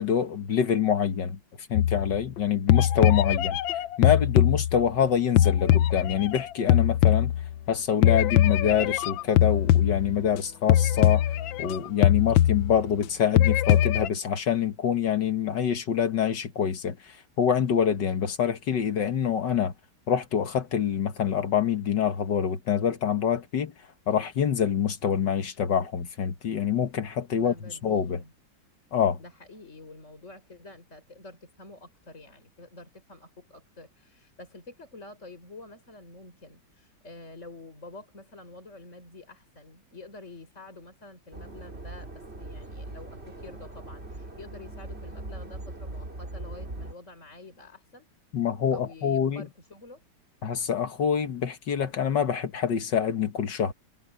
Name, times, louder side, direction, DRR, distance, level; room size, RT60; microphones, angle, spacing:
voice 1, 0.0-1.4 1.7-3.6 4.0-7.3 7.7-11.2 11.6-19.7 20.1-23.7 24.1-27.5 27.8-28.2 28.9-29.2 48.3-49.5 50.4-53.7, left 8 dB, 65° left, 1.9 m, -26 dB
sound 1, 1.8-2.4 2.7-5.0 5.4-7.7 8.0-10.4 10.7-11.8 12.0-13.0 13.4-14.1, left 12 dB, 85° left, 1.5 m, -22 dB
voice 2, 27.3-28.3 29.2-48.1 48.7-50.0, left 2 dB, 40° left, 5.8 m, -48 dB
sound 2, 41.3-46.9, right 2 dB, 30° right, 3.7 m, -40 dB
omnidirectional pair, 2.1 m